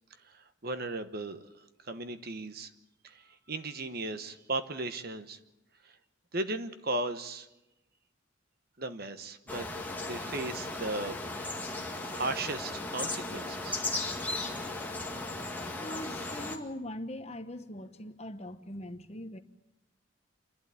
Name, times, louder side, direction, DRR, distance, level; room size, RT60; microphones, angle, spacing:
voice 1, 0.6-1.4 1.9-2.7 3.0-3.2 3.5-5.4 6.3-7.5 8.8-9.7 10.1-11.2 12.1-13.8, right 2 dB, 50° right, 1.1 m, -36 dB
sound 1, 9.5-16.6, left 2 dB, 10° left, 1.8 m, -36 dB
voice 2, 15.8-19.4, left 1 dB, 30° left, 1.1 m, -41 dB
28.0 x 12.0 x 9.4 m
head